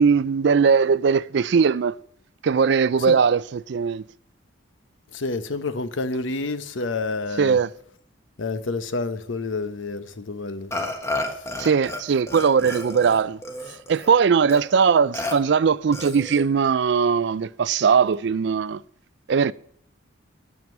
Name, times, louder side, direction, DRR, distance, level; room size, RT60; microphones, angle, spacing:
voice 1, 0.0-2.0 2.4-4.0 7.4-7.7 11.6-13.4 13.9-18.8 19.3-19.5, right 6 dB, 60° right, 0.4 m, -20 dB
voice 2, 5.1-7.6 8.4-10.9 11.3-11.4, left 3 dB, 70° left, 0.8 m, -29 dB
Burping eructation, 10.7-12.0 12.3-14.1 14.5-14.6 15.1-15.3 15.9-16.5, left 2 dB, 15° left, 1.3 m, -31 dB
9.3 x 7.5 x 9.0 m
head